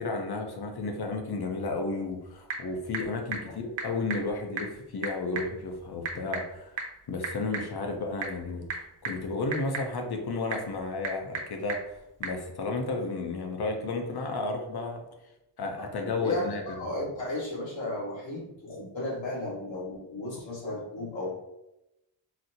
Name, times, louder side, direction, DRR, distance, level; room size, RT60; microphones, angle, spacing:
voice 1, 0.0-15.0 15.6-16.6, left 3 dB, 55° left, 3 dB, 0.8 m, -33 dB
Typing / Telephone, 1.9-12.4, right 4 dB, 70° right, 0.8 m, -39 dB
voice 2, 16.2-21.4, left 1 dB, 75° left, -4 dB, 1.5 m, -34 dB
4.1 x 2.1 x 2.7 m, 0.89 s
cardioid pair, 55°, 45 cm